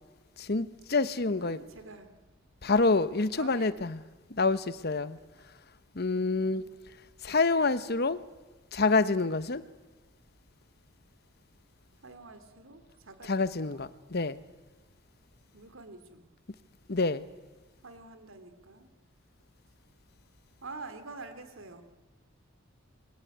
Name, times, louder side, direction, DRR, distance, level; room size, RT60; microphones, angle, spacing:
voice 1, 0.4-1.6 2.6-4.0 4.3-5.2 5.9-6.6 7.2-8.2 8.7-9.6 13.3-14.4 16.9-17.3, left 3 dB, 50° left, 1.0 m, -27 dB
voice 2, 1.3-2.1 3.4-3.8 5.4-5.6 6.4-6.7 12.0-13.8 15.5-16.3 17.8-18.9 20.6-21.8, right 3 dB, 75° right, 3.1 m, -47 dB
28.5 x 22.0 x 9.3 m
head